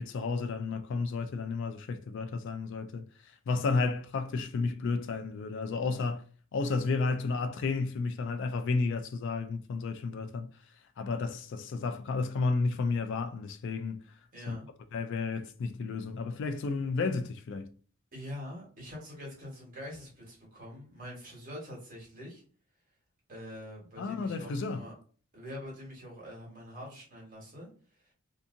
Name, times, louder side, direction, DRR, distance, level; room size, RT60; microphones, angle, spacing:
voice 1, 0.0-3.1 3.5-6.2 6.5-10.5 11.0-14.0 14.5-14.6 14.9-17.7 24.0-24.8, left 4 dB, 60° left, 0.3 m, -32 dB
voice 2, 14.3-14.7 18.1-22.4 23.3-24.9 25.3-27.7, left 1 dB, 40° right, 1.2 m, -44 dB
2.7 x 2.6 x 2.5 m
head